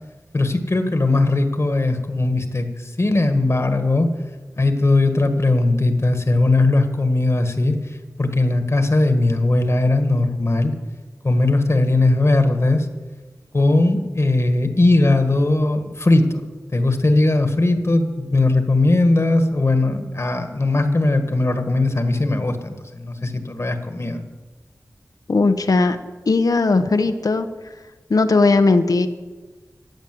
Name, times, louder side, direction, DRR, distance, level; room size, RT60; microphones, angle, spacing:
voice 1, 0.3-4.1 4.6-7.8 8.2-10.7 11.2-12.9 13.5-16.5 16.7-24.2, left 2 dB, 50° left, 7 dB, 1.5 m, -19 dB
voice 2, 25.3-26.0 26.3-27.5 28.1-29.1, left 3 dB, 85° left, 9 dB, 1.0 m, -17 dB
15.0 x 8.6 x 7.8 m, 1.3 s
wide cardioid pair, 60°, 6 cm